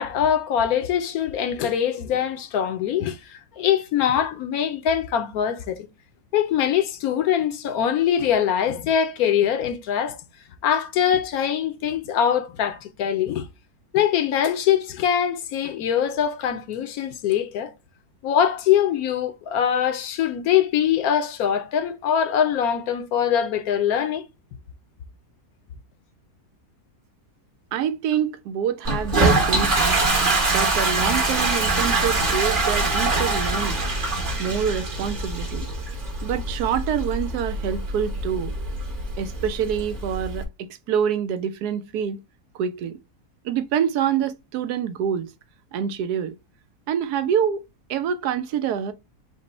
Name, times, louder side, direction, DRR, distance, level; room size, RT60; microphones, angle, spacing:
voice 1, 0.0-5.9 6.3-10.2 10.6-13.5 13.9-17.7 18.2-24.2, left 9 dB, 70° left, 1.0 m, -23 dB
voice 2, 27.7-30.1 30.5-33.8 34.4-35.7 36.2-38.5 39.2-42.2 42.5-43.0 43.4-45.3 45.7-46.3 46.9-47.6 47.9-48.9, right 8 dB, 80° right, 1.1 m, -26 dB
Toilet flush, 28.8-40.4, right 2 dB, 35° right, 1.1 m, -24 dB
5.2 x 2.1 x 4.0 m
omnidirectional pair, 1.7 m